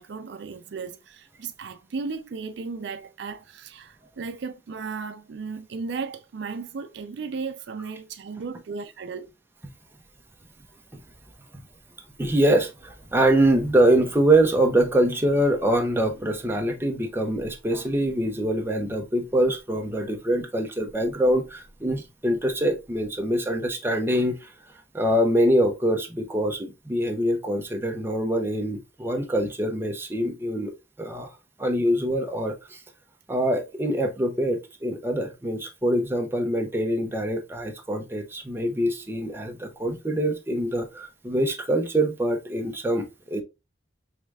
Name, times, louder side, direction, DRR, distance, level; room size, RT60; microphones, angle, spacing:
voice 1, 0.0-9.3, right 4 dB, 70° right, 0.4 m, -35 dB
voice 2, 12.2-24.5 24.9-31.3 31.6-32.8 33.3-43.4, right 1 dB, 15° right, 0.7 m, -24 dB
4.8 x 3.1 x 2.3 m
head